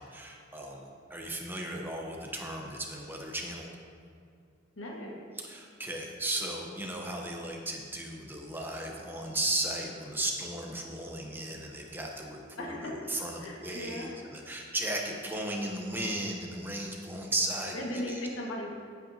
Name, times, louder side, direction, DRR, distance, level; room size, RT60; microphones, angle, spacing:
voice 1, 0.0-3.7 5.4-18.2, right 1 dB, 10° right, 0 dB, 0.9 m, -36 dB
voice 2, 4.8-5.2 12.6-13.0 13.4-14.2 17.7-18.7, left 1 dB, 75° left, -1 dB, 1.7 m, -37 dB
14.5 x 8.5 x 2.8 m, 2.3 s
head